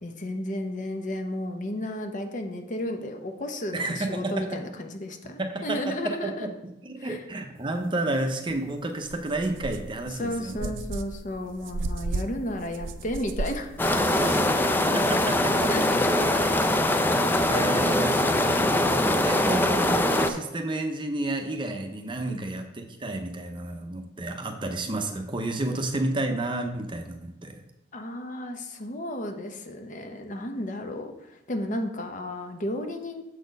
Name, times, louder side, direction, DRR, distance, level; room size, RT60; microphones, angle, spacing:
voice 1, 0.0-6.5 7.0-7.2 10.2-14.7 15.7-16.4 22.3-22.4 27.9-33.2, left 1 dB, 45° left, 5 dB, 0.8 m, -33 dB
voice 2, 3.7-4.3 5.4-6.5 6.8-10.7 14.2-14.4 14.9-15.9 17.5-27.6, right 2 dB, 25° right, 4 dB, 0.7 m, -31 dB
sound 1, 8.5-8.6 9.0-14.1, right 2 dB, 90° right, 0.5 m, -35 dB
sound 2, 13.8-20.3, left 1 dB, 10° left, 0.4 m, -23 dB
7.1 x 4.3 x 5.2 m, 0.93 s
head